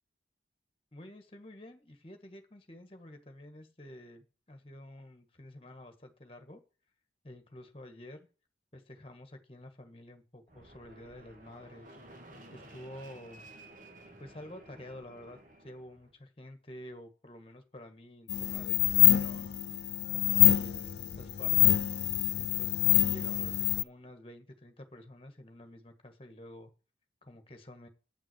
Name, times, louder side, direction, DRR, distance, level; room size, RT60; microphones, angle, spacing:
voice 1, 0.9-6.6 7.2-8.3 8.7-11.9 12.5-13.5 14.2-26.7 27.2-27.9, left 1 dB, 30° left, 6 dB, 1.6 m, -50 dB
Fixed-wing aircraft airplane, 10.5-16.1, right 1 dB, 45° right, 1.8 m, -54 dB
sound 1, 18.3-23.8, left 15 dB, 60° left, 0.4 m, -25 dB
8.8 x 6.0 x 7.9 m, 0.36 s
head